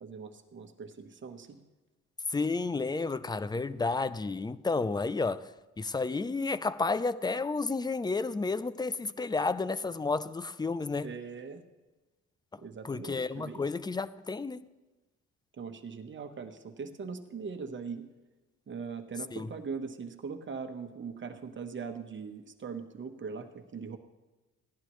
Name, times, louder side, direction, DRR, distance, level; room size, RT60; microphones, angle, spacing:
voice 1, 0.0-1.6 11.0-11.6 12.6-13.7 15.6-18.0 18.7-24.0, right 5 dB, 40° right, 1.2 m, -41 dB
voice 2, 2.3-11.2 12.5-12.6 12.8-14.7 19.3-19.5, left 3 dB, 15° left, 0.4 m, -31 dB
17.0 x 11.0 x 3.1 m
cardioid pair, 90°, 30 cm